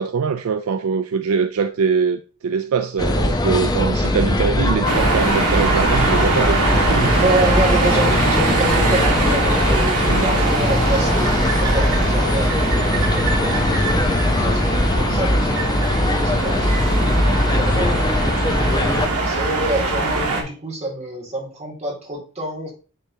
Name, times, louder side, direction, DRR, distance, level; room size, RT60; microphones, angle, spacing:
voice 1, 0.0-7.5 10.1-10.3, right 6 dB, 65° right, 0.4 m, -22 dB
sound 1, 3.0-19.1, left 1 dB, 20° left, 0.6 m, -20 dB
sound 2, 4.8-20.4, right 2 dB, 85° right, 1.5 m, -22 dB
voice 2, 7.2-17.9 18.5-22.7, right 1 dB, 30° right, 2.3 m, -27 dB
10.0 x 3.5 x 2.8 m
head